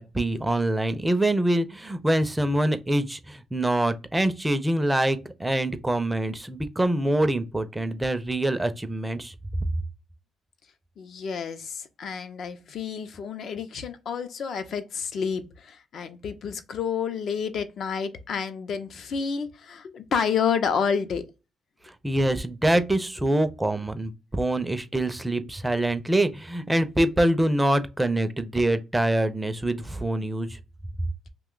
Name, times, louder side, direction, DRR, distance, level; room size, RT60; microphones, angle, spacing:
voice 1, 0.0-9.3 21.8-30.6, right 1 dB, 10° right, 0.5 m, -25 dB
voice 2, 11.0-21.3, left 6 dB, 60° left, 0.5 m, -29 dB
2.8 x 2.2 x 3.8 m
cardioid pair, 90°, 0 cm